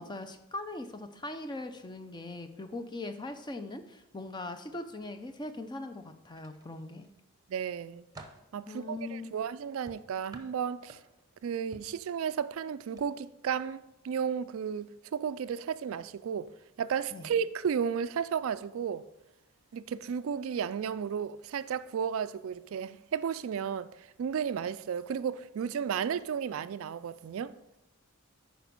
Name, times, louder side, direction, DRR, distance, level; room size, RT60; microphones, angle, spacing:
voice 1, 0.0-7.1 8.7-9.3 17.1-17.3, left 2 dB, 20° left, 0.5 m, -40 dB
sound 1, 6.3-7.1 7.6-8.5 9.9-11.3 11.7-12.0 12.9-13.1 13.4-13.6, right 2 dB, 15° right, 0.8 m, -52 dB
voice 2, 7.5-8.0 8.5-11.0 11.4-16.5 16.8-19.0 19.7-23.9 24.2-27.5, right 7 dB, 65° right, 0.3 m, -33 dB
9.1 x 5.1 x 5.3 m
head